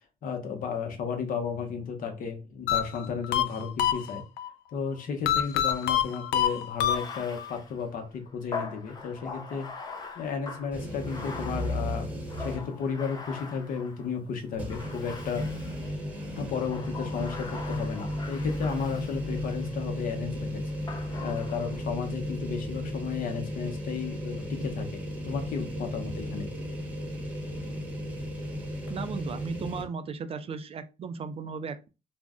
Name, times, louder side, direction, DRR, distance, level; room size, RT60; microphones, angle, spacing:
voice 1, 0.2-4.2 4.7-9.7 10.2-12.1 12.4-15.5 16.4-20.6 21.2-26.5, left 6 dB, 55° left, 5 dB, 0.8 m, -33 dB
sound 1, 2.7-4.5 5.3-7.5, left 10 dB, 80° left, 0.4 m, -26 dB
Bathtub (filling or washing), 6.8-14.1 14.7-16.0 16.5-19.7 20.9-21.8, left 4 dB, 25° left, 0.5 m, -42 dB
sound 2, 10.7-12.9 13.3-13.4 14.5-29.8, left 1 dB, 10° right, 0.9 m, -35 dB
voice 2, 28.9-31.9, right 5 dB, 35° right, 11 dB, 0.3 m, -36 dB
2.4 x 2.1 x 3.5 m, 0.29 s
cardioid pair, 110°, 17 cm